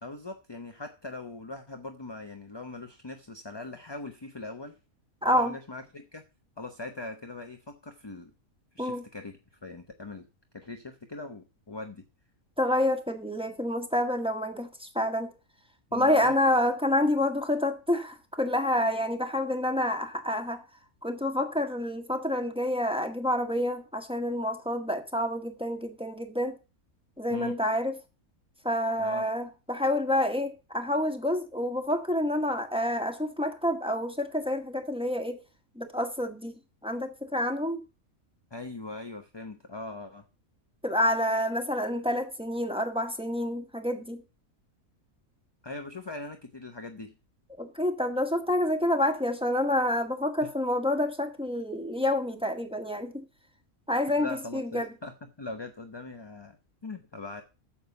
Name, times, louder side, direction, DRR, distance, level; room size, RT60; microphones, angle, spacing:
voice 1, 0.0-4.8 5.2-6.2 6.6-8.3 8.7-10.3 10.5-12.0 15.9-16.4 27.3-27.6 29.0-29.3 38.5-40.2 45.6-47.1 54.2-56.6 56.8-57.4, left 2 dB, 20° left, 0.8 m, -41 dB
voice 2, 5.2-5.6 8.8-9.0 12.6-15.3 15.9-20.6 21.0-26.6 27.2-27.9 28.6-35.4 35.7-36.5 36.8-37.8 40.8-44.2 47.6-53.2 53.9-54.9, left 1 dB, 5° right, 1.5 m, -28 dB
9.3 x 7.2 x 6.7 m
omnidirectional pair, 1.5 m